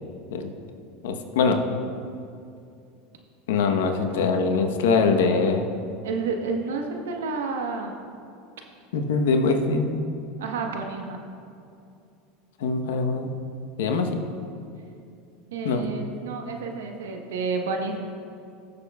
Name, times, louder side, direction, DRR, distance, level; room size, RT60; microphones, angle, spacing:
voice 1, 1.0-1.6 3.5-5.7 8.9-10.0 12.6-13.3 13.8-14.1 15.6-15.8, left 4 dB, 80° left, 5 dB, 1.0 m, -23 dB
voice 2, 6.0-8.0 10.4-11.2 15.5-18.1, right 4 dB, 85° right, 3 dB, 1.1 m, -30 dB
20.0 x 6.7 x 2.3 m, 2.6 s
supercardioid pair, 105°, 0 cm